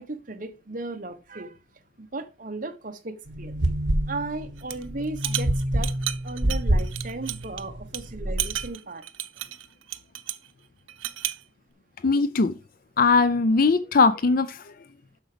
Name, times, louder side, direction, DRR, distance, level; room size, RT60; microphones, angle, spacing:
voice 1, 0.0-1.6 2.0-3.6 4.1-5.9 6.2-9.0, right 2 dB, 45° right, 1.1 m, -36 dB
sound 1, 3.3-8.7, right 1 dB, 60° right, 1.5 m, -27 dB
sound 2, 4.6-4.8 5.2-7.6 7.9-8.0 8.4-10.5 10.9-11.4, right 13 dB, 85° right, 0.7 m, -32 dB
voice 2, 12.0-12.5 13.0-14.7, left 4 dB, 45° left, 0.5 m, -20 dB
7.9 x 6.0 x 5.0 m
head